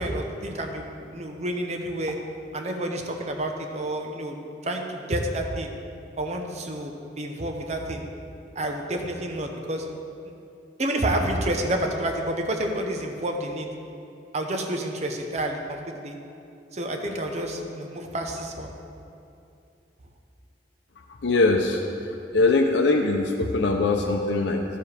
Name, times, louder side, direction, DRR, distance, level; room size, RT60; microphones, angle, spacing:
voice 1, 0.0-2.2 2.5-4.4 4.6-5.7 6.2-8.0 8.6-9.9 10.8-13.7 14.3-16.1 16.7-18.7, right 1 dB, 40° right, 3 dB, 0.8 m, -29 dB
voice 2, 21.2-21.8 22.3-24.6, left 3 dB, 90° left, 1 dB, 0.6 m, -21 dB
13.5 x 7.1 x 3.4 m, 2.6 s
head